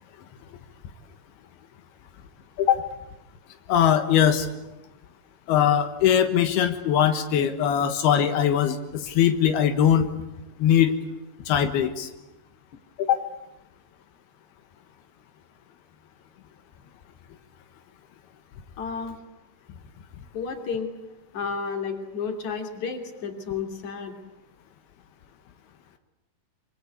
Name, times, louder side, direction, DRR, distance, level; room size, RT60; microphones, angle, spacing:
voice 1, 3.7-4.5 5.5-10.1 10.6-10.9 11.5-12.1 13.0-13.2, left 9 dB, 90° left, 8 dB, 3.5 m, -21 dB
voice 2, 18.8-19.1 20.3-20.9 21.3-24.1, left 5 dB, 50° left, 5 dB, 4.2 m, -31 dB
26.5 x 25.0 x 8.3 m, 0.97 s
omnidirectional pair, 4.4 m